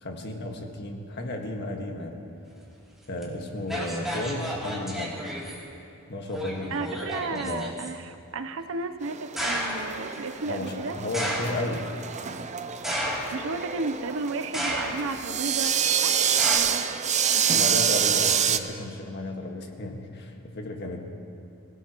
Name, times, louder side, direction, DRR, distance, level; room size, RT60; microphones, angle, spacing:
voice 1, 0.0-2.2 3.1-5.2 6.1-7.8 10.4-11.9 17.5-21.0, left 1 dB, 55° left, 2 dB, 1.6 m, -33 dB
sound 1, 3.2-3.3 3.7-5.6 6.3-7.9 9.4-9.9 11.1-11.7 12.8-13.6 14.5-15.2 16.4-16.6, equal, ahead, 2.9 m, -31 dB
voice 2, 6.7-11.0 13.3-15.7 16.0-16.2 16.4-16.9 17.3-17.6, right 3 dB, 65° right, 9 dB, 0.7 m, -33 dB
sound 2, 9.0-18.6, right 8 dB, 35° right, 0.6 m, -27 dB
25.5 x 17.0 x 3.0 m, 2.6 s
head